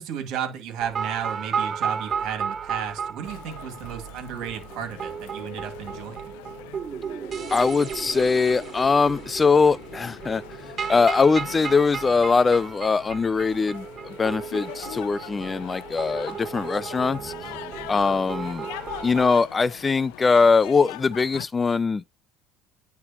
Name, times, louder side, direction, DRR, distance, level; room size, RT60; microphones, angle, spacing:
voice 1, 0.0-6.3, right 8 dB, 65° right, 2.4 m, -33 dB
sound 1, 0.8-19.3, right 7 dB, 40° right, 1.0 m, -34 dB
sound 2, 3.2-21.5, left 17 dB, 80° left, 0.5 m, -42 dB
voice 2, 7.5-17.3 17.9-18.7 19.0-22.0, left 4 dB, 25° left, 0.3 m, -22 dB
9.6 x 3.3 x 2.9 m
supercardioid pair, 90°, 0 cm